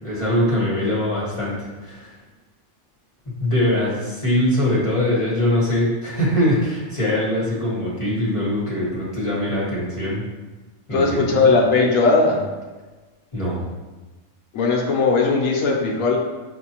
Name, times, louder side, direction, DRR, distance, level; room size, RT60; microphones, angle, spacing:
voice 1, 0.0-1.5 1.8-2.1 3.4-10.2 10.9-11.5 13.3-13.6, left 1 dB, 25° left, -7 dB, 1.1 m, -22 dB
voice 2, 10.9-12.4 14.5-16.2, left 3 dB, 70° left, -1 dB, 1.1 m, -18 dB
6.1 x 2.6 x 2.9 m, 1.3 s
omnidirectional pair, 1.5 m